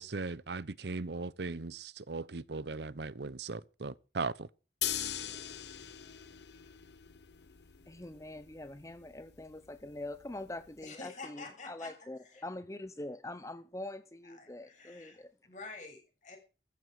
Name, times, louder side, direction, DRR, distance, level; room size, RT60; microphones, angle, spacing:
voice 1, 0.0-4.5, right 3 dB, 75° right, 0.8 m, -38 dB
sound 1, 4.8-10.8, left 11 dB, 80° left, 1.1 m, -42 dB
voice 2, 7.9-15.3, left 1 dB, 15° left, 0.8 m, -44 dB
voice 3, 10.8-12.0 12.2-12.4 14.2-16.4, left 3 dB, 45° left, 6.9 m, -48 dB
14.5 x 14.5 x 4.9 m
head